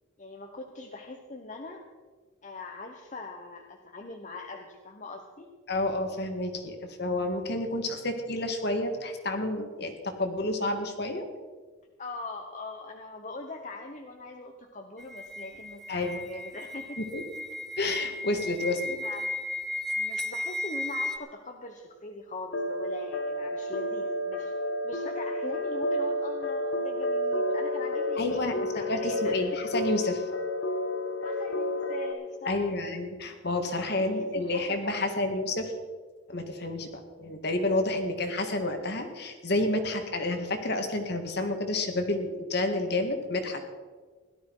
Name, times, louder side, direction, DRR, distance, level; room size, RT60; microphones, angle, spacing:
voice 1, 0.2-1.8 2.4-5.5 12.0-17.0 19.0-19.3 20.0-24.5 24.8-29.4 31.2-32.7 34.0-35.4, left 2 dB, 40° left, 3 dB, 1.0 m, -42 dB
voice 2, 5.7-11.2 15.9-16.2 17.0-17.2 17.8-19.0 28.2-28.6 28.9-30.3 32.5-35.7 36.3-36.9 37.2-43.7, left 2 dB, 55° left, 5 dB, 1.7 m, -30 dB
sound 1, 15.0-21.2, left 1 dB, ahead, 0.5 m, -35 dB
sound 2, 22.5-32.1, left 1 dB, 75° left, 1.2 m, -31 dB
17.0 x 12.0 x 4.7 m, 1.5 s
head